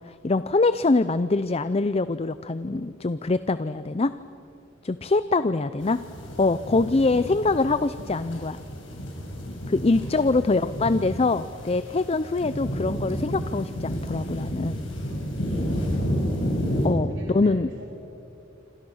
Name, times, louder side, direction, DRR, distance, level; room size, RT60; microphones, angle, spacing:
voice 1, 0.1-4.1 4.8-6.0 6.4-8.6 9.7-14.8 16.8-17.7, left 3 dB, 30° left, 13 dB, 0.5 m, -24 dB
sound 1, 5.8-16.9, equal, 75° left, 6.6 m, -31 dB
voice 2, 15.5-16.2 17.1-17.9, equal, 65° right, -2 dB, 4.1 m, -47 dB
27.5 x 27.0 x 6.4 m, 2.5 s
head